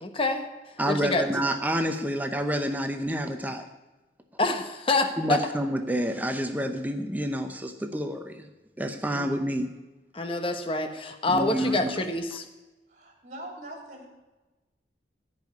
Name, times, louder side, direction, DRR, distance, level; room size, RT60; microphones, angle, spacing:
voice 1, 0.0-0.5 0.9-1.2 4.4-5.4 9.1-9.3 10.1-12.4, left 2 dB, 30° left, 6 dB, 1.1 m, -27 dB
voice 2, 0.8-3.7 5.2-8.5 8.8-9.7 11.3-11.9, equal, 10° right, 6 dB, 0.7 m, -28 dB
voice 3, 12.9-14.1, right 1 dB, 45° right, 1 dB, 3.3 m, -42 dB
15.5 x 5.4 x 9.3 m, 1.1 s
head